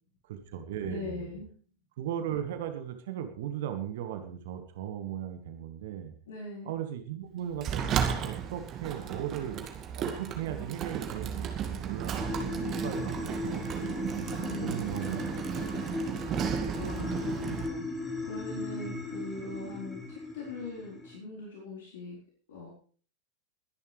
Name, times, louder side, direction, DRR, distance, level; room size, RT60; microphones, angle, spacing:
voice 1, 0.3-1.4 2.0-6.1 6.6-9.7 9.9-14.1 14.6-15.3 15.6-15.7, right 10 dB, 55° right, 8 dB, 1.7 m, -37 dB
voice 2, 0.8-1.5 6.3-6.7 14.4-14.9 16.7-17.9 18.2-22.2 22.5-22.7, left 3 dB, 60° left, -5 dB, 4.2 m, -41 dB
Sliding door, 7.6-17.7, right 8 dB, 30° right, 2.1 m, -34 dB
sound 1, 12.2-21.2, left 2 dB, 15° left, 4.4 m, -37 dB
21.5 x 10.5 x 3.4 m, 0.43 s
figure-of-eight pair, 90°, 0 cm